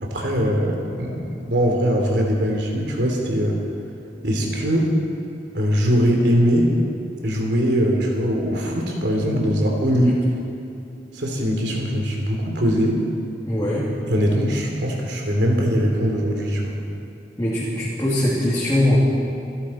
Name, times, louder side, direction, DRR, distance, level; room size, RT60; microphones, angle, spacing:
voice 1, 0.0-3.6 4.2-4.9 5.5-6.7 7.2-10.1 11.1-13.0 14.1-16.7, equal, 75° right, 0 dB, 3.0 m, -21 dB
voice 2, 13.5-13.8 17.4-19.0, left 1 dB, 15° left, -8 dB, 2.6 m, -22 dB
28.5 x 11.0 x 4.4 m, 2.7 s
head